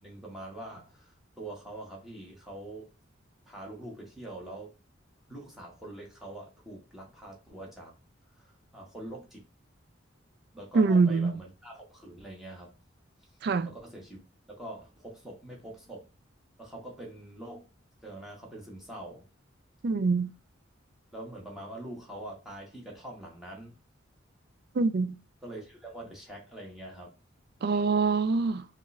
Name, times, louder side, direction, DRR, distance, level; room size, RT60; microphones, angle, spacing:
voice 1, 0.0-2.9 3.5-4.7 5.3-7.9 8.3-9.5 10.5-12.7 13.6-14.2 14.5-16.1 16.6-17.7 18.0-19.3 21.1-23.8 25.4-27.1, right 1 dB, ahead, 1.3 m, -44 dB
voice 2, 10.7-11.3 13.4-13.7 19.8-20.3 24.8-25.2 27.6-28.6, right 4 dB, 55° right, 0.4 m, -24 dB
5.4 x 2.5 x 3.2 m
head